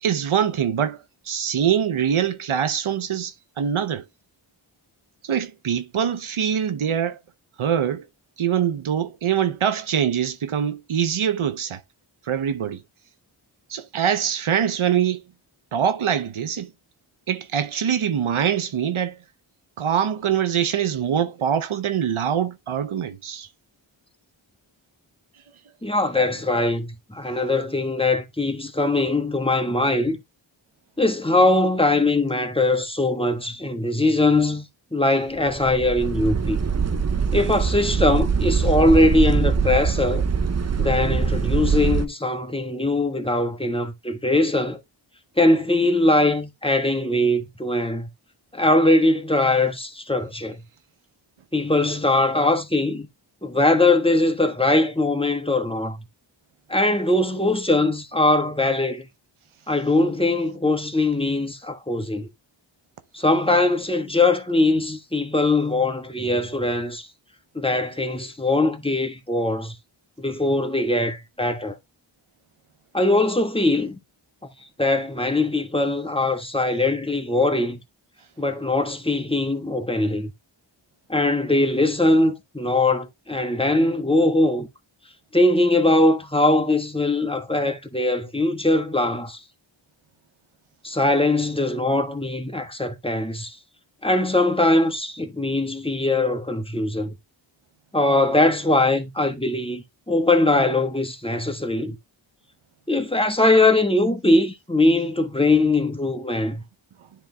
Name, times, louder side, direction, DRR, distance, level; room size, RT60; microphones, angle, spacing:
voice 1, 0.0-4.0 5.2-7.2 7.6-8.1 8.4-11.8 12.3-12.8 13.7-15.2 15.7-16.7 17.3-19.2 19.8-23.5, right 8 dB, 90° right, 0.8 m, -24 dB
voice 2, 25.8-30.2 31.0-36.6 37.3-40.2 40.8-44.8 45.4-48.1 48.5-50.6 51.5-53.1 53.4-56.0 56.7-59.1 59.7-62.3 63.1-67.1 67.5-69.8 70.2-71.7 72.9-74.0 74.8-77.8 78.4-80.3 81.1-84.7 85.3-89.4 90.8-93.6 94.0-97.1 97.9-102.0 102.9-106.6, left 2 dB, 10° left, 1.3 m, -21 dB
sound 1, 35.5-42.1, right 5 dB, 35° right, 0.6 m, -23 dB
10.5 x 3.6 x 3.4 m
wide cardioid pair, 50°, 47 cm